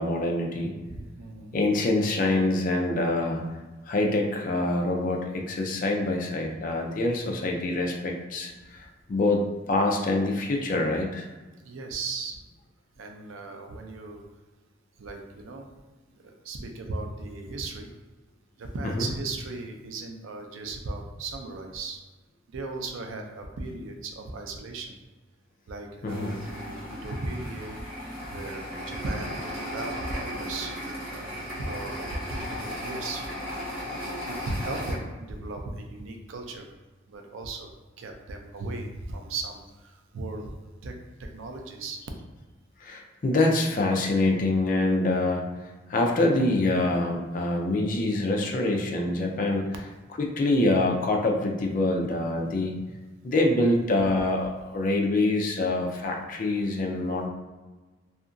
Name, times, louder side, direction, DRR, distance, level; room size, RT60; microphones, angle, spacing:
voice 1, 0.0-0.7 1.5-3.4 3.9-11.3 18.8-19.1 26.0-26.4 42.8-45.5 45.9-49.7 50.2-52.7 53.2-57.3, left 2 dB, 40° left, 1 dB, 0.4 m, -25 dB
voice 2, 0.9-1.6 11.6-12.4 13.0-14.2 15.0-15.7 16.4-17.9 18.6-22.0 22.5-25.0 25.7-27.7 28.3-31.3 31.6-33.2 34.3-36.7 37.1-37.7 38.0-40.5 40.8-40.9 41.2-42.0 53.5-53.8, right 2 dB, 85° right, 3 dB, 0.4 m, -36 dB
sound 1, 26.1-35.0, equal, 30° right, 1.1 m, -36 dB
2.7 x 2.4 x 2.5 m, 1.2 s
head